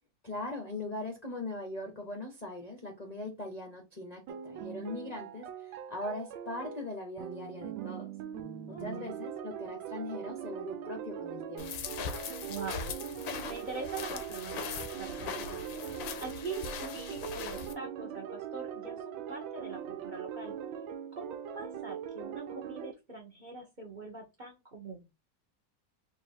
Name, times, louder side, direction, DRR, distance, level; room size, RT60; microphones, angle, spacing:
voice 1, 0.2-8.1 8.7-11.7, left 2 dB, 35° left, 1 dB, 0.6 m, -40 dB
sound 1, 4.3-22.9, right 8 dB, 90° right, 1.4 m, -41 dB
voice 2, 8.7-9.0 12.4-12.8 13.4-15.9 16.2-20.5 21.1-25.1, right 4 dB, 35° right, 2 dB, 0.8 m, -43 dB
Sand walk, 11.6-17.7, left 7 dB, 90° left, 1.4 m, -40 dB
3.9 x 2.7 x 4.5 m, 0.25 s
omnidirectional pair, 2.0 m